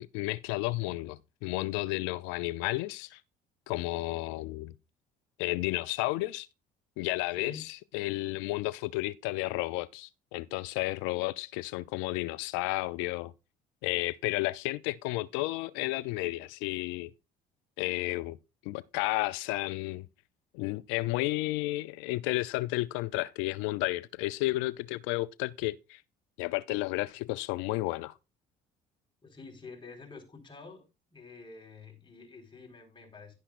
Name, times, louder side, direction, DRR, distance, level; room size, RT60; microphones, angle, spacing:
voice 1, 0.0-3.2 3.7-4.7 5.4-6.5 7.0-13.3 13.8-17.1 17.8-18.4 18.7-20.1 20.5-26.0 26.4-28.1, left 19 dB, 75° left, 0.5 m, -32 dB
voice 2, 29.2-30.8 31.1-33.4, left 4 dB, 25° left, 4.3 m, -48 dB
11.5 x 9.9 x 2.5 m
hypercardioid pair, 70°, 19 cm